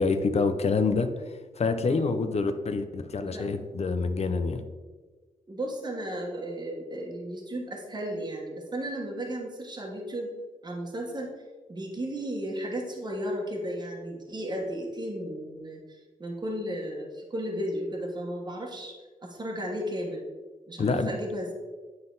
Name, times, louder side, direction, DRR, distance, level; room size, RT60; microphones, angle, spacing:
voice 1, 0.0-4.6 20.8-21.1, left 4 dB, 50° left, 9 dB, 0.6 m, -27 dB
voice 2, 5.5-10.3 10.6-11.4 11.7-19.0 19.2-20.2 20.7-21.5, equal, 30° right, -1 dB, 1.3 m, -34 dB
9.4 x 3.9 x 3.9 m, 1.3 s
cardioid pair, 90°, 14 cm